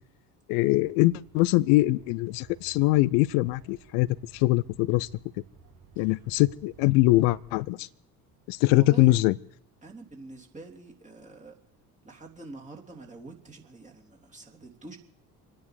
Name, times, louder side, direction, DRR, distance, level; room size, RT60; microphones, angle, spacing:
voice 1, 0.5-4.1 4.3-5.1 6.0-7.9 8.5-9.3, left 19 dB, 55° left, 22 dB, 0.7 m, -23 dB
sound 1, 0.5-7.6, right 6 dB, 50° right, 4.0 m, -55 dB
voice 2, 8.7-9.2 9.8-11.5 12.0-15.0, right 3 dB, 15° right, 0 dB, 3.2 m, -45 dB
27.5 x 9.9 x 5.1 m, 0.74 s
figure-of-eight pair, 60°, 48 cm